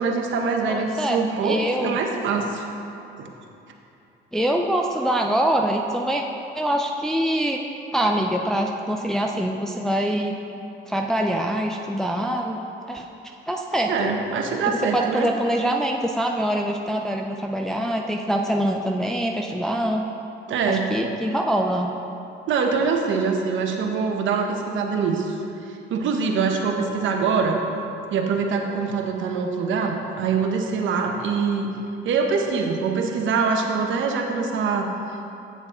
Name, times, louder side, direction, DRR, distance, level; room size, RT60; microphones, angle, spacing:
voice 1, 0.0-2.6 3.2-3.4 13.9-15.3 20.5-20.8 22.5-27.6 28.1-31.7 32.0-34.9, right 5 dB, 75° right, 2 dB, 0.9 m, -24 dB
voice 2, 0.7-2.0 4.3-6.2 6.5-7.6 7.9-10.3 10.9-12.6 12.9-13.1 13.5-14.1 14.6-20.1 20.7-21.9, right 1 dB, ahead, 1 dB, 0.4 m, -24 dB
8.0 x 7.3 x 3.7 m, 2.8 s
cardioid pair, 90°, 20 cm